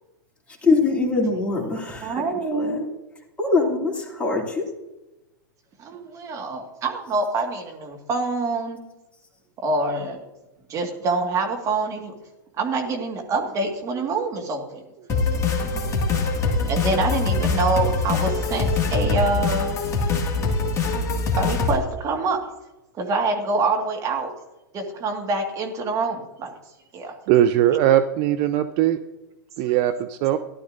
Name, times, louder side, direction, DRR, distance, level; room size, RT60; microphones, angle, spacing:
voice 1, 0.6-2.8 3.4-4.6, left 3 dB, 10° left, -1 dB, 2.8 m, -23 dB
voice 2, 2.0-2.9 5.8-8.8 9.6-10.2 10.7-12.1 12.6-14.8 16.7-19.8 21.4-22.4 23.0-24.3 24.7-26.5 26.9-27.1, right 3 dB, 30° right, 3 dB, 1.9 m, -25 dB
sound 1, 15.1-21.8, left 3 dB, 25° left, 1.9 m, -23 dB
voice 3, 27.3-29.0 29.6-30.4, right 12 dB, 45° right, 11 dB, 0.5 m, -19 dB
15.0 x 11.5 x 2.6 m, 1.0 s
hypercardioid pair, 105°, 11 cm